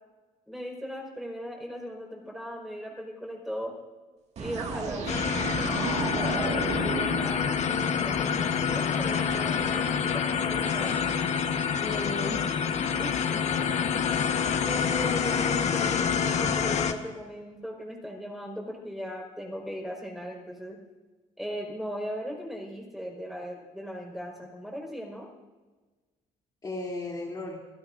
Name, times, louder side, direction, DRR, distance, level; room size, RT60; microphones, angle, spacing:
voice 1, 0.5-3.7 4.4-10.9 13.0-13.4 14.6-20.8 21.4-25.3, equal, ahead, 0 dB, 4.7 m, -38 dB
sound 1, 4.4-8.3, right 5 dB, 50° right, 1.9 m, -34 dB
sound 2, 5.1-16.9, left 7 dB, 55° left, 1.2 m, -27 dB
voice 2, 11.8-12.9 26.6-27.6, left 2 dB, 30° left, -4 dB, 3.0 m, -35 dB
26.5 x 16.0 x 2.6 m, 1.2 s
cardioid pair, 115°, 14 cm